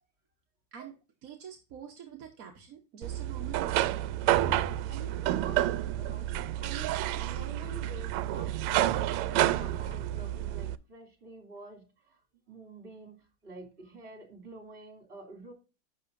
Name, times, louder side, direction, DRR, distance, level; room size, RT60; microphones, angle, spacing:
voice 1, 1.2-4.0, right 8 dB, 50° right, 2 dB, 1.2 m, -46 dB
sound 1, 3.0-10.8, right 13 dB, 85° right, 1.5 m, -29 dB
voice 2, 4.4-12.2 12.5-15.5, right 3 dB, 30° right, 3 dB, 3.1 m, -47 dB
11.0 x 6.6 x 2.5 m, 0.31 s
omnidirectional pair, 2.4 m